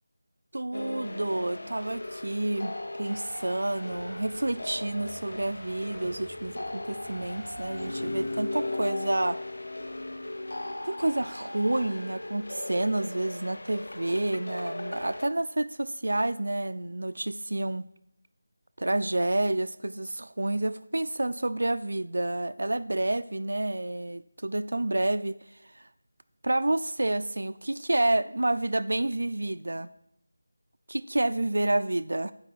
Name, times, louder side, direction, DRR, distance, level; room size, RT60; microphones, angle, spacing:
voice 1, 0.5-9.4 10.8-17.9 18.8-25.9 26.4-29.9 30.9-32.3, right 2 dB, 80° right, 11 dB, 0.4 m, -29 dB
sound 1, 0.7-15.3, left 2 dB, 80° left, 0.5 m, -37 dB
sound 2, 3.5-8.6, right 1 dB, 5° right, 0.6 m, -52 dB
8.5 x 4.8 x 7.4 m, 0.76 s
figure-of-eight pair, 180°, 0 cm